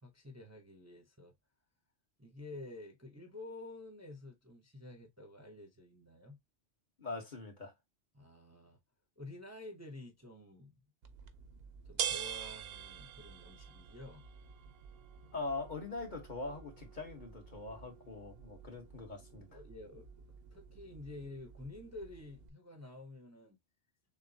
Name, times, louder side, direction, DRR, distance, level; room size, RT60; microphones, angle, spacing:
voice 1, 0.0-1.3 2.2-6.4 8.1-8.8 9.2-10.8 11.8-14.3 19.4-20.1 20.5-23.6, left 2 dB, 15° right, 0.7 m, -50 dB
voice 2, 7.0-7.7 15.3-19.5, left 3 dB, 40° left, 1.4 m, -42 dB
sound 1, 11.0-22.5, right 8 dB, 60° right, 0.8 m, -46 dB
6.6 x 2.3 x 2.7 m
omnidirectional pair, 1.2 m